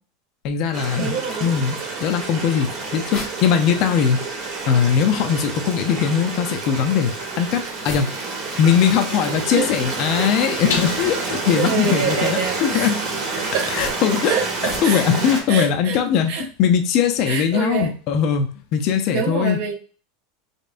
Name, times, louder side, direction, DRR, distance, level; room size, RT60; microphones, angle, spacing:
voice 1, 0.4-1.8 2.0-4.2 4.7-8.1 8.6-13.0 13.7-14.3 14.8-19.6, left 8 dB, 40° left, 5 dB, 0.5 m, -20 dB
sound 1, 0.6-19.1, left 6 dB, 70° left, 0.8 m, -41 dB
Stream, 0.7-15.4, right 3 dB, 35° right, 1.1 m, -28 dB
voice 2, 1.0-1.6 9.6-9.7 11.5-12.9 13.5-13.7 14.2-15.0 15.5-16.0 16.3-16.5 17.2-17.9 19.1-19.8, right 7 dB, 50° right, 3 dB, 0.8 m, -25 dB
sound 2, 3.1-15.2, left 3 dB, 15° left, 0.9 m, -43 dB
5.1 x 2.2 x 2.5 m, 0.38 s
supercardioid pair, 175°, 0 cm